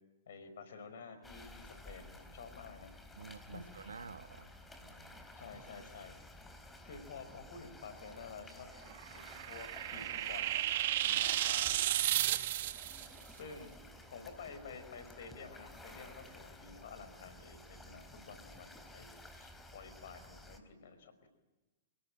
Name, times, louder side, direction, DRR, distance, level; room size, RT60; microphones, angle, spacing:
voice 1, 0.3-2.9 3.5-3.6 5.3-6.1 6.8-8.7 9.1-10.7 11.0-12.1 13.3-13.8 14.1-21.3, left 5 dB, 65° left, 10 dB, 5.1 m, -51 dB
sound 1, 1.2-20.6, left 1 dB, 10° left, 3.9 m, -54 dB
voice 2, 3.2-5.2 11.1-11.4, right 4 dB, 80° right, 11 dB, 1.4 m, -51 dB
sound 2, 8.9-13.1, right 13 dB, 60° right, 1.3 m, -33 dB
28.0 x 18.5 x 9.0 m, 1.1 s
hypercardioid pair, 105°, 0 cm